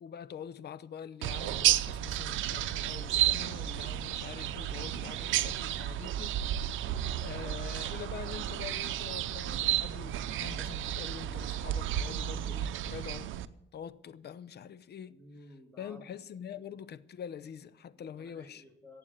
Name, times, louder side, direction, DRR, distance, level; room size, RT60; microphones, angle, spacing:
voice 1, 0.0-6.7 7.2-13.3 13.7-15.2 15.8-18.6, left 8 dB, 55° left, 0.7 m, -45 dB
sound 1, 1.2-13.5, right 12 dB, 80° right, 0.6 m, -32 dB
voice 2, 15.1-16.0 17.9-19.0, left 1 dB, 10° left, 3.8 m, -54 dB
14.5 x 8.6 x 9.0 m
cardioid pair, 90°, 20 cm